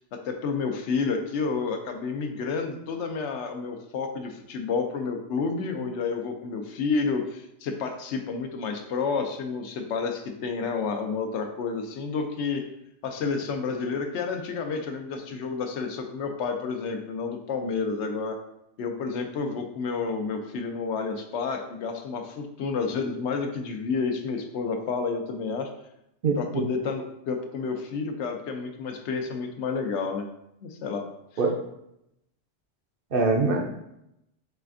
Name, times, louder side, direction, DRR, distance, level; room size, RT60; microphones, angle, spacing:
voice 1, 0.0-12.6 13.0-18.4 18.8-25.7 26.4-30.3 30.6-31.0, left 5 dB, 85° left, 5 dB, 0.9 m, -30 dB
voice 2, 26.2-26.6 31.4-31.6 33.1-33.7, right 3 dB, 60° right, 2 dB, 0.7 m, -23 dB
4.8 x 3.3 x 2.5 m, 0.82 s
omnidirectional pair, 1.2 m